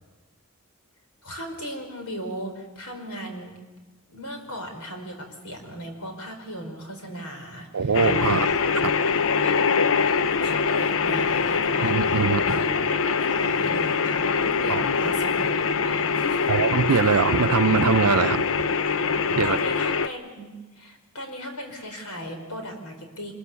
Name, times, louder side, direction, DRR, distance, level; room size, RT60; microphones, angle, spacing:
voice 1, 1.2-3.6 4.1-8.6 9.4-9.6 10.4-16.7 19.4-23.3, equal, 85° left, 4 dB, 5.2 m, -37 dB
voice 2, 7.7-8.5 8.8-8.9 11.8-12.6 14.7-15.1 16.5-18.4 19.3-19.6, right 5 dB, 70° right, 12 dB, 0.7 m, -22 dB
sound 1, 7.9-20.1, left 5 dB, 65° left, 0.7 m, -23 dB
25.5 x 21.5 x 7.0 m, 1.2 s
head